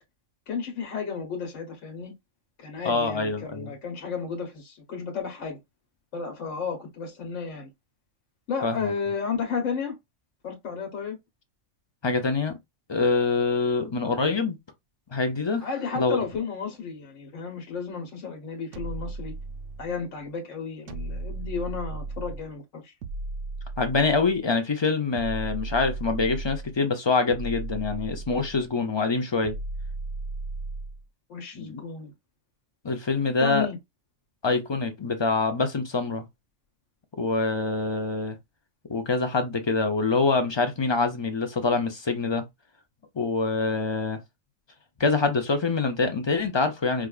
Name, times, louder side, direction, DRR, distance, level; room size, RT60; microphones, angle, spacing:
voice 1, 0.5-2.1 2.6-5.6 6.1-7.7 8.5-9.9 10.4-11.2 15.6-19.4 19.8-22.9 31.3-32.1 33.4-33.8, left 5 dB, 75° left, 1.3 m, -33 dB
voice 2, 2.8-3.7 8.6-8.9 12.0-12.6 12.9-14.6 15.1-15.7 16.0-16.2 23.8-29.6 31.5-31.8 32.8-33.7 34.4-36.2 37.2-38.4 38.9-42.4 43.2-44.2 45.0-47.1, left 4 dB, 40° left, 0.3 m, -25 dB
sound 1, 18.7-20.0 20.9-22.5 23.0-24.4 25.1-26.8 27.3-28.7 29.4-31.0, right 2 dB, 70° right, 0.9 m, -35 dB
4.8 x 2.3 x 2.3 m
omnidirectional pair, 1.3 m